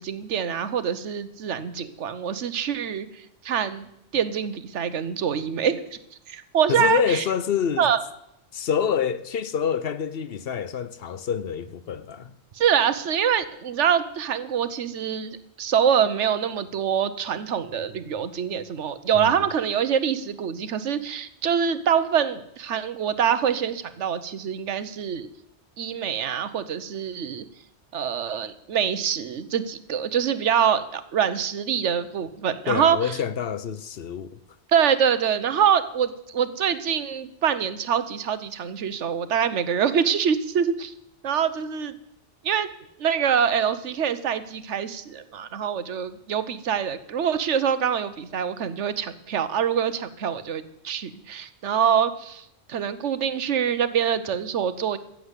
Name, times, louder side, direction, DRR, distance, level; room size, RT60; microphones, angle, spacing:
voice 1, 0.0-3.1 3.4-3.9 4.1-6.0 6.3-7.2 7.8-8.0 12.6-25.3 25.8-27.4 27.9-33.1 34.7-40.9 41.2-41.9 42.4-42.7 43.0-52.4 52.7-55.0, right 8 dB, 85° right, 1.2 m, -25 dB
voice 2, 6.7-7.9 8.5-12.3 19.1-19.5 32.7-34.4, left 7 dB, 60° left, 0.9 m, -27 dB
15.0 x 7.7 x 8.2 m
omnidirectional pair, 1.2 m